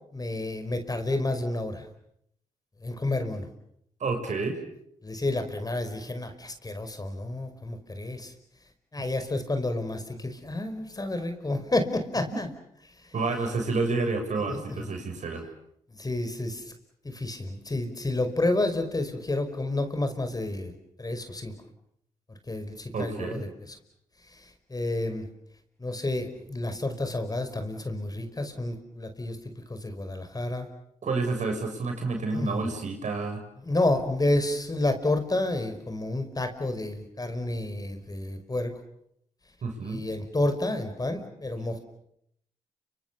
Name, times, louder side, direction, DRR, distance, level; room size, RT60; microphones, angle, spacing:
voice 1, 0.1-1.9 2.8-3.5 5.0-8.3 8.9-12.5 14.5-14.9 16.0-16.6 17.0-20.7 21.0-21.5 22.5-23.5 24.7-25.2 25.8-29.4 29.7-30.7 32.3-32.6 33.6-38.7 39.8-41.8, left 2 dB, 30° left, 8 dB, 5.2 m, -30 dB
voice 2, 4.0-4.6 9.0-9.1 12.3-12.4 13.1-15.5 22.9-23.4 31.0-33.4 39.6-40.0, right 3 dB, 60° right, 4 dB, 7.4 m, -29 dB
30.0 x 26.0 x 7.0 m, 0.73 s
supercardioid pair, 55°, 14 cm